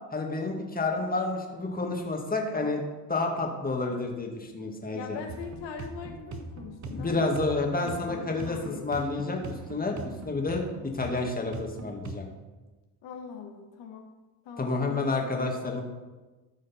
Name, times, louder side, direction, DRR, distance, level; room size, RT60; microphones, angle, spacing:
voice 1, 0.1-2.8 3.1-5.2 6.9-10.6 10.9-12.3 14.6-15.8, left 3 dB, 20° left, 1 dB, 2.0 m, -30 dB
voice 2, 4.9-7.3 7.8-8.9 13.0-14.1 14.4-15.1 15.4-15.7, left 6 dB, 65° left, 2 dB, 1.5 m, -42 dB
sound 1, 5.3-12.2, right 3 dB, 40° right, 1.2 m, -41 dB
13.5 x 5.0 x 4.3 m, 1.2 s
supercardioid pair, 80°, 46 cm